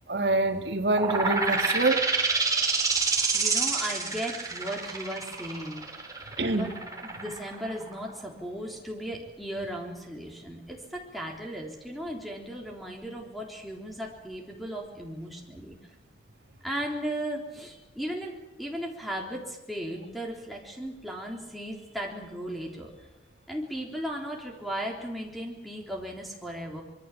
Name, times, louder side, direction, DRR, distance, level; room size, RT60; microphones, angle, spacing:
voice 1, 0.1-2.1 6.4-6.7, right 2 dB, 70° right, 5 dB, 1.9 m, -26 dB
sound 1, 0.9-8.3, right 4 dB, 20° right, 3.7 m, -27 dB
voice 2, 3.3-6.2 6.5-6.7 7.0-15.9 16.6-22.9 23.5-26.8, equal, ahead, -2 dB, 3.7 m, -36 dB
25.5 x 23.0 x 7.5 m, 1.0 s
head